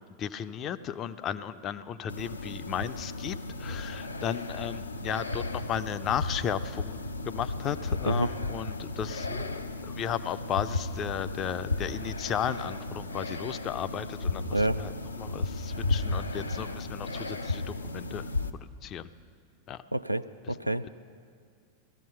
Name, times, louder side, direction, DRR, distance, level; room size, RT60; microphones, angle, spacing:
voice 1, 0.0-7.0 7.2-14.9 15.2-19.1 19.7-19.8 20.5-20.6, left 9 dB, 30° left, 13 dB, 0.5 m, -35 dB
sound 1, 2.1-18.5, left 2 dB, 80° left, 0.6 m, -34 dB
voice 2, 14.5-14.8 19.9-20.9, right 1 dB, 90° right, 11 dB, 0.3 m, -28 dB
17.0 x 14.0 x 5.6 m, 2.1 s
figure-of-eight pair, 90°, 0 cm